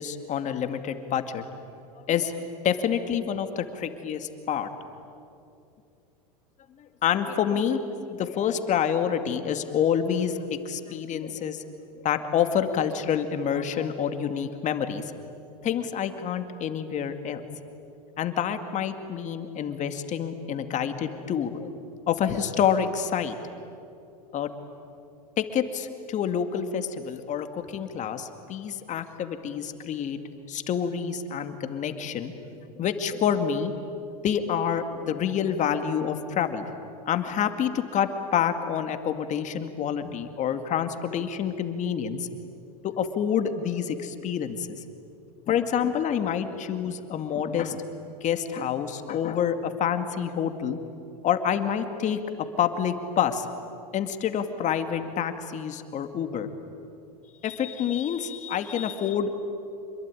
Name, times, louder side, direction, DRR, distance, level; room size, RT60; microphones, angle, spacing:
voice 1, 0.0-1.4 2.1-4.7 7.0-11.7 12.0-15.0 15.6-17.4 18.2-21.7 22.1-23.3 24.3-24.5 25.4-30.2 30.5-32.3 32.7-33.7 34.2-36.7 37.1-42.3 42.8-44.8 45.5-47.8 48.2-50.8 51.2-52.2 52.5-53.5 53.9-56.5 57.4-59.3, left 8 dB, 40° left, 8 dB, 2.2 m, -27 dB
27.0 x 22.0 x 9.9 m, 2.6 s
hypercardioid pair, 105°, 20 cm